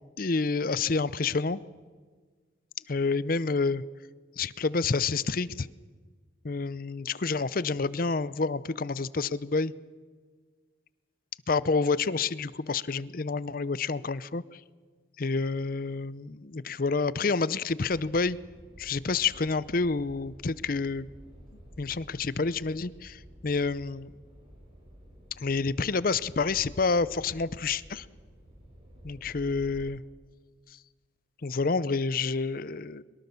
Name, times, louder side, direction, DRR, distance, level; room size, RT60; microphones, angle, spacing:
voice 1, 0.2-1.6 2.9-3.8 4.4-5.7 6.4-9.7 11.5-14.6 15.2-18.4 18.8-21.1 21.8-24.1 25.4-28.1 29.0-30.0 31.4-33.0, left 4 dB, 50° left, 18 dB, 0.6 m, -28 dB
sound 1, 17.8-29.9, equal, 30° right, 7.1 m, -51 dB
23.0 x 22.0 x 6.9 m, 1.5 s
head